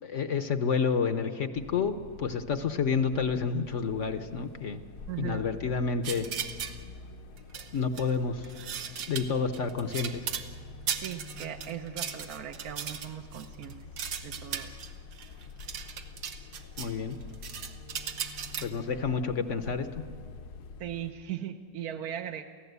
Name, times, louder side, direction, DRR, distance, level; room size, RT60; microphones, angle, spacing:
voice 1, 0.0-4.8 5.2-6.3 7.7-8.5 9.1-10.3 16.8-17.2 18.6-20.0, left 5 dB, 50° left, 9 dB, 1.0 m, -29 dB
sound 1, 1.5-21.1, left 4 dB, 65° left, 1.4 m, -47 dB
voice 2, 5.1-5.5 11.0-13.9 14.2-14.8 20.8-22.4, right 10 dB, 65° right, 5 dB, 1.2 m, -38 dB
sound 2, 6.0-6.8 7.4-8.1 8.4-10.5 10.9-16.9 17.2-18.7, right 7 dB, 90° right, 1.8 m, -37 dB
29.0 x 16.0 x 8.1 m, 2.2 s
omnidirectional pair, 1.9 m